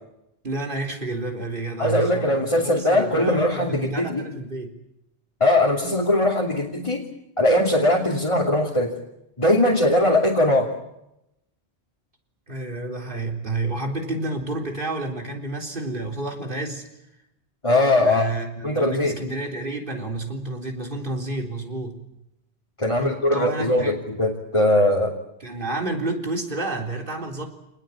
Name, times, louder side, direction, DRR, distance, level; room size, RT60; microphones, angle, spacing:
voice 1, 0.4-2.3 2.6-4.7 12.5-16.8 18.0-22.0 23.0-23.9 25.4-27.5, right 2 dB, 50° right, 3 dB, 3.9 m, -30 dB
voice 2, 1.8-4.3 5.4-7.1 7.4-8.9 9.4-10.7 17.6-18.3 18.6-19.2 22.8-25.1, left 1 dB, 30° left, -1 dB, 2.9 m, -20 dB
28.0 x 19.5 x 8.5 m, 0.87 s
omnidirectional pair, 1.1 m